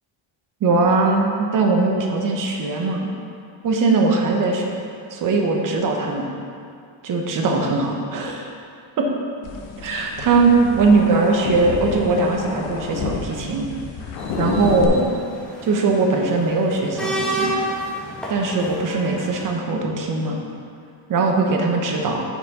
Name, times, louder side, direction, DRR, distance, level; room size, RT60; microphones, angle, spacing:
voice 1, 0.6-3.1 3.6-4.7 5.1-6.3 7.0-8.5 9.0-9.1 9.8-13.7 14.4-15.0 15.6-17.5 18.3-20.4 21.1-22.2, right 3 dB, 45° right, 1 dB, 0.9 m, -20 dB
sound 1, 9.4-14.9, left 5 dB, 70° left, 0.9 m, -29 dB
sound 2, 14.2-19.5, right 1 dB, ahead, 1.0 m, -30 dB
6.9 x 5.8 x 4.2 m, 2.3 s
cardioid pair, 170°, 45 cm